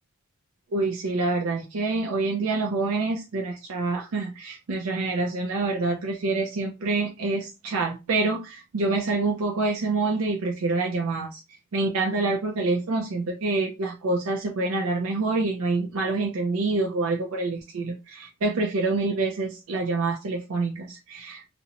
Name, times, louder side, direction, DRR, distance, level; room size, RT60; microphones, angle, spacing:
voice 1, 0.7-11.4 11.7-21.5, right 3 dB, 75° right, 0.5 m, -26 dB
2.5 x 2.1 x 2.8 m
head